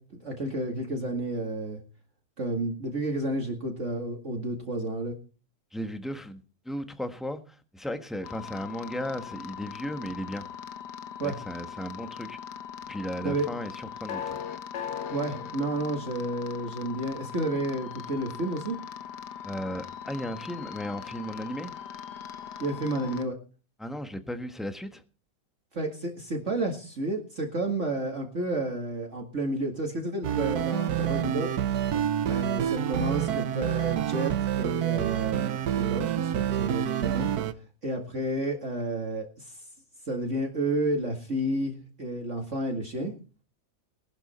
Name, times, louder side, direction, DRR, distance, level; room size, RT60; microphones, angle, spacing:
voice 1, 0.0-1.8 2.4-5.2 11.2-11.4 13.2-13.5 15.1-18.8 22.6-23.4 25.7-31.5 32.2-37.3 37.8-39.6 40.1-43.1, right 2 dB, 40° right, 2.2 m, -31 dB
voice 2, 5.7-10.4 11.2-12.4 12.9-14.4 19.4-21.7 23.8-25.0, equal, ahead, 1.1 m, -35 dB
sound 1, 8.2-23.2, left 8 dB, 70° left, 1.6 m, -40 dB
sound 2, 30.2-37.5, right 10 dB, 65° right, 1.3 m, -28 dB
19.0 x 12.0 x 4.3 m
omnidirectional pair, 1.9 m